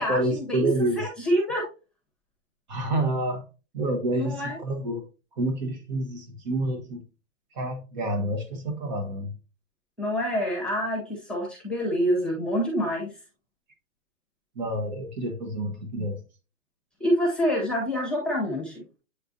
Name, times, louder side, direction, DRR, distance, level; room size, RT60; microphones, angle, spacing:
voice 1, 0.0-1.1 2.7-3.4 3.7-5.1 5.4-7.0 7.5-9.3 14.5-16.2, right 1 dB, 35° right, 4 dB, 1.3 m, -28 dB
voice 2, 1.0-1.6 4.1-4.6 10.0-13.1 17.0-18.8, equal, ahead, -1 dB, 1.3 m, -26 dB
8.3 x 4.5 x 2.7 m, 0.31 s
hypercardioid pair, 165°, 39 cm